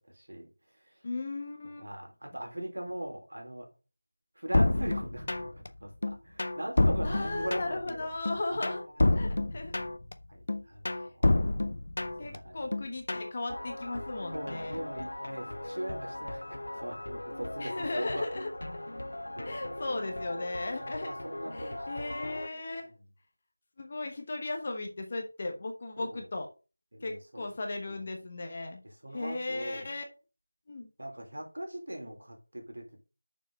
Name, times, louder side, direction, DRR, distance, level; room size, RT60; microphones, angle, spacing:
voice 1, 0.1-0.5 0.9-1.0 1.8-3.7 4.4-8.1 8.5-8.7 9.2-9.7 10.3-11.6 12.2-12.7 14.3-18.4 19.3-19.7 20.8-21.9 22.8-23.0 26.0-26.3 26.9-27.5 27.9-28.0 28.8-29.9 31.0-33.0, right 1 dB, 75° right, 3.7 m, -41 dB
voice 2, 1.0-1.9 7.0-8.8 9.2-9.7 10.9-11.0 12.2-14.8 17.6-18.5 19.4-21.2 21.5-22.9 23.8-26.5 27.0-28.8 29.1-30.0 30.7-30.9, left 2 dB, 20° left, 1.0 m, -36 dB
sound 1, 4.5-5.7 6.0-7.9 8.2-10.1 10.5-12.4 12.7-13.3, left 2 dB, 35° left, 0.6 m, -28 dB
sound 2, 13.5-22.5, left 1 dB, 75° left, 0.7 m, -39 dB
6.7 x 6.2 x 5.2 m
figure-of-eight pair, 180°, 0 cm